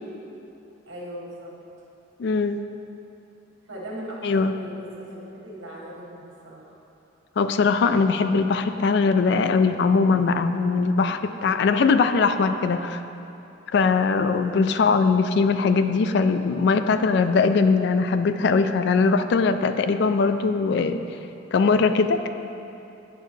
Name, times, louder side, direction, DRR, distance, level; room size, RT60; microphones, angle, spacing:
voice 1, 0.9-1.6 3.7-6.7, right 1 dB, 80° right, -4 dB, 1.6 m, -38 dB
voice 2, 2.2-2.6 4.2-4.5 7.4-13.0 13.7-21.0 21.5-22.3, left 4 dB, 60° left, 9 dB, 0.3 m, -21 dB
9.1 x 6.5 x 3.2 m, 2.8 s
head